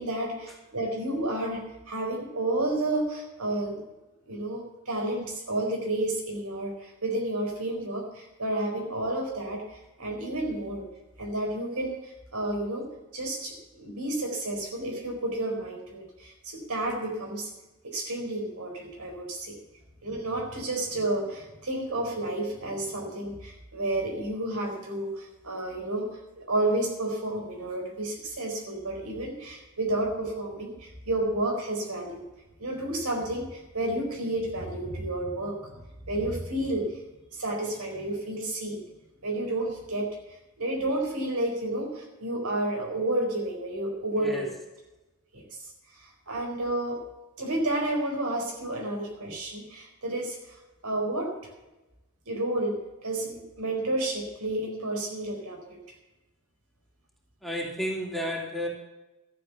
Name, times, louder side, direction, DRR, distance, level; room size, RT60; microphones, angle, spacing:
voice 1, 0.0-3.8 4.3-10.8 11.2-12.9 13.1-17.5 17.8-19.6 20.0-26.1 26.4-32.2 32.6-37.0 37.3-38.8 39.2-40.2 40.6-44.5 45.3-45.6 46.0-47.0 47.4-50.6 50.8-51.4 52.3-55.8, right 1 dB, 80° right, 1 dB, 4.6 m, -31 dB
voice 2, 44.1-44.5 57.4-58.7, left 1 dB, ahead, -3 dB, 2.9 m, -31 dB
13.5 x 8.0 x 7.1 m, 1.0 s
head